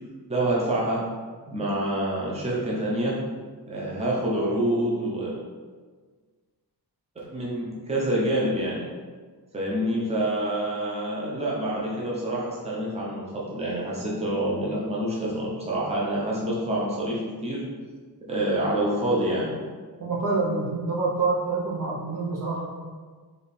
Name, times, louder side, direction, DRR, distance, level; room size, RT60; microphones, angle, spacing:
voice 1, 0.3-1.0 1.5-3.1 3.7-5.3 7.3-8.8 9.5-17.6 18.3-19.6, right 1 dB, 15° right, -6 dB, 0.8 m, -27 dB
voice 2, 20.0-22.6, right 3 dB, 50° right, -5 dB, 1.0 m, -26 dB
4.7 x 2.7 x 3.3 m, 1.5 s
wide cardioid pair, 135°, 40 cm